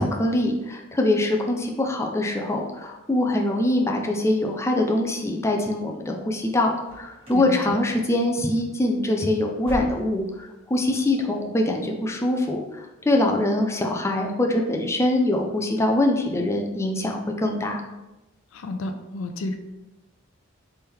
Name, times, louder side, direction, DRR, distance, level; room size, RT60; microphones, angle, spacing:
voice 1, 0.0-17.8, left 1 dB, 15° left, 1 dB, 0.4 m, -23 dB
sound 1, 6.8-7.5 7.8-8.2 8.5-8.7 9.1-10.4 10.7-10.8 11.3-11.4, equal, 30° right, 1.6 m, -39 dB
voice 2, 7.3-7.8 18.5-19.6, left 2 dB, 70° left, 6 dB, 0.5 m, -31 dB
3.7 x 3.4 x 4.2 m, 1.0 s
head